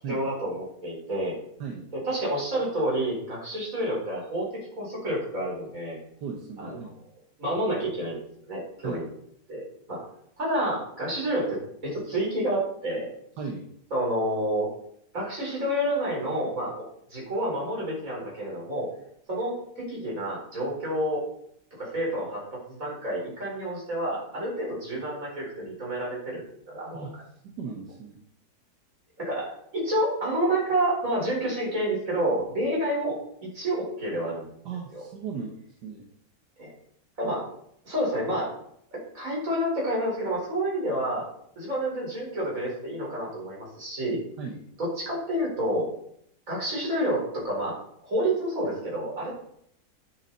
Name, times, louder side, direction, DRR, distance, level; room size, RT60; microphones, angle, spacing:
voice 1, 0.1-1.4 1.9-6.0 6.6-6.9 7.4-9.1 9.5-10.0 10.4-13.1 13.9-14.7 15.1-16.7 17.1-18.9 19.3-21.2 21.8-22.4 22.7-27.1 29.2-34.5 34.9-35.0 36.6-36.7 37.2-37.4 37.8-38.5 38.9-41.2 41.6-44.2 44.8-45.9 46.5-47.8 48.0-49.3, right 1 dB, 50° right, -4 dB, 5.0 m, -29 dB
voice 2, 6.2-6.9 8.8-9.0 13.4-13.7 26.9-27.1 27.4-28.2 34.6-36.1 37.2-37.3 44.4-44.6, right 5 dB, 80° right, 1 dB, 1.7 m, -37 dB
10.0 x 7.4 x 4.1 m, 0.70 s
omnidirectional pair, 1.8 m